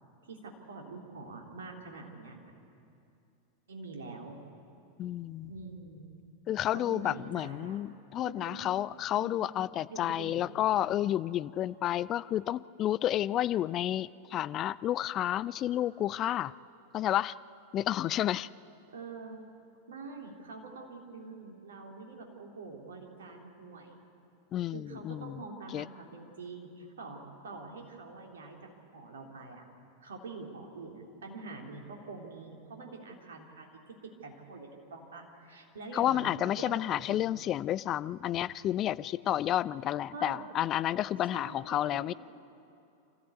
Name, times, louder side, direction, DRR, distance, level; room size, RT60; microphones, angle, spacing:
voice 1, 0.2-2.4 3.7-4.4 5.4-6.1 6.7-7.8 8.2-8.7 9.1-10.5 18.9-19.4 19.9-23.9 24.7-29.6 30.0-37.3 40.1-40.5 41.3-41.6 41.9-42.1, right 3 dB, 65° right, 1 dB, 3.2 m, -45 dB
voice 2, 5.0-5.5 6.5-16.5 16.9-17.4 17.7-18.5 24.5-25.4 25.7-25.8 35.9-42.1, left 12 dB, 30° left, 18 dB, 0.4 m, -31 dB
26.5 x 14.5 x 8.2 m, 2.6 s
figure-of-eight pair, 90°, 0 cm